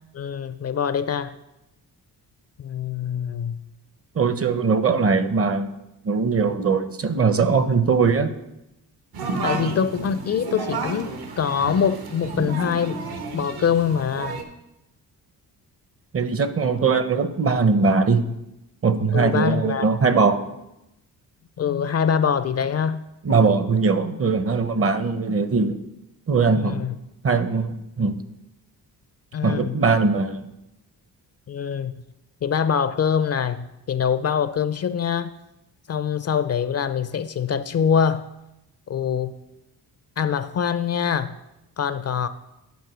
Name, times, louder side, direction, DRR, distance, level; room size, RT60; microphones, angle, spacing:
voice 1, 0.1-1.3 2.6-3.6 9.4-13.1 13.3-14.4 19.1-19.9 21.6-23.0 26.5-27.0 29.3-29.8 31.5-32.0 32.4-35.3 35.9-38.3 38.9-39.4 40.2-41.4 41.8-42.3, left 7 dB, 40° left, 13 dB, 0.4 m, -24 dB
voice 2, 4.1-5.7 6.0-8.3 16.1-18.2 18.8-20.4 23.2-25.8 26.3-26.8 27.2-28.2 29.4-30.4, right 4 dB, 35° right, 11 dB, 0.7 m, -20 dB
sound 1, 9.1-14.4, right 3 dB, 75° right, 1.2 m, -31 dB
9.3 x 4.4 x 6.1 m, 0.90 s
cardioid pair, 95°, 38 cm